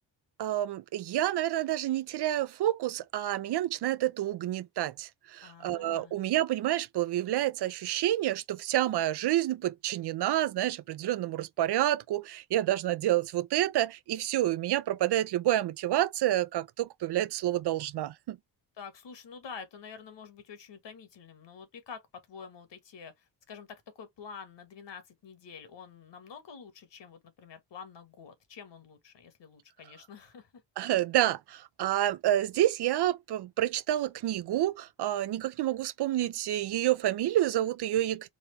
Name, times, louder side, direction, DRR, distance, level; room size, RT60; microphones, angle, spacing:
voice 1, 0.4-18.4 30.8-38.3, right 13 dB, 65° right, 0.5 m, -29 dB
voice 2, 5.4-6.1 18.8-30.6, left 6 dB, 70° left, 1.4 m, -48 dB
4.2 x 2.4 x 3.2 m
cardioid pair, 75°, 44 cm